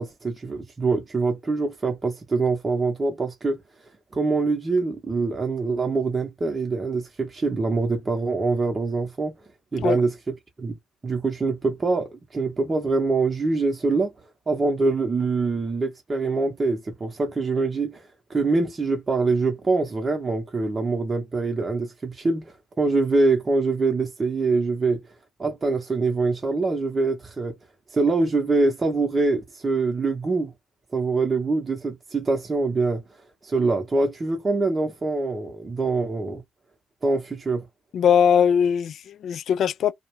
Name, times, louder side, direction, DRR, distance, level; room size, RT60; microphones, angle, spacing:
voice 1, 0.0-3.6 4.1-9.4 9.7-10.8 11.0-14.1 14.5-25.0 25.4-27.6 27.9-30.5 30.9-33.0 33.4-36.4 37.0-37.7, right 3 dB, 30° right, 0.7 m, -24 dB
voice 2, 37.9-39.9, left 8 dB, 60° left, 0.3 m, -20 dB
2.3 x 2.1 x 3.0 m
hypercardioid pair, 50°, 0 cm